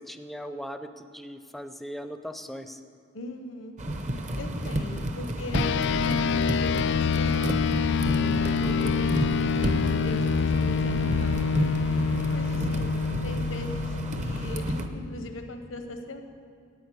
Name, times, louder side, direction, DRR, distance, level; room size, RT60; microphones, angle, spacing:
voice 1, 0.0-2.8 8.6-9.0, equal, ahead, 8 dB, 0.5 m, -39 dB
voice 2, 3.1-3.8 4.3-7.6 8.2-11.4 12.3-12.9 13.2-16.2, left 1 dB, 85° left, 6 dB, 1.0 m, -39 dB
sound 1, 3.8-14.9, right 1 dB, 40° right, 0.8 m, -31 dB
sound 2, 5.5-15.3, left 5 dB, 60° left, 0.3 m, -27 dB
11.0 x 8.7 x 8.3 m, 2.4 s
head